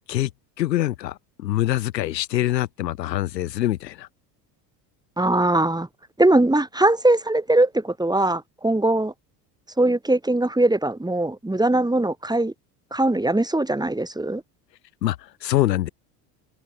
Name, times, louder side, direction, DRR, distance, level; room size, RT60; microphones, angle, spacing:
voice 1, 0.6-4.1 15.0-15.9, left 14 dB, 90° left, 4.9 m, -24 dB
voice 2, 5.2-5.9 6.2-9.1 9.8-12.5 12.9-14.4, right 2 dB, 10° right, 5.4 m, -21 dB
hypercardioid pair, 80°, 49 cm